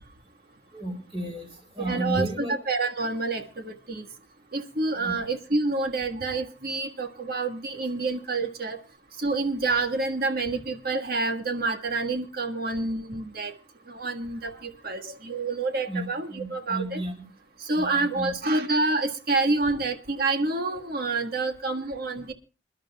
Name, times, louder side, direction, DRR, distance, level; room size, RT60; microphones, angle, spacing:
voice 1, 0.7-2.5 5.0-5.2 15.9-17.3 17.8-18.3, equal, 30° right, 1 dB, 4.0 m, -33 dB
voice 2, 1.8-4.0 4.5-8.8 9.2-13.5 13.9-17.0 17.7-22.3, right 3 dB, 55° right, 5 dB, 1.5 m, -28 dB
27.0 x 11.5 x 2.3 m, 0.31 s
head